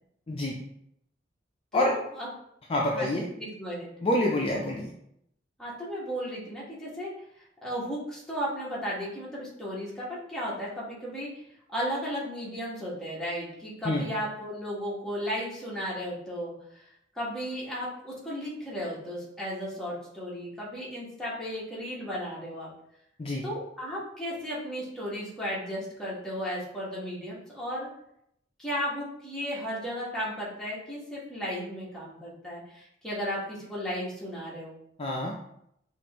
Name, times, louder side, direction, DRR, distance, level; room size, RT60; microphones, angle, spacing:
voice 1, 1.7-2.3 2.9-3.9 5.6-7.1 7.6-11.3 11.7-16.9 17.1-22.7 23.4-27.9 28.6-34.8, equal, 5° left, -7 dB, 1.3 m, -35 dB
voice 2, 2.7-3.3 4.0-4.9 13.8-14.1 23.2-23.4 35.0-35.3, left 1 dB, 30° left, -2 dB, 0.4 m, -27 dB
5.0 x 2.5 x 2.9 m, 0.75 s
head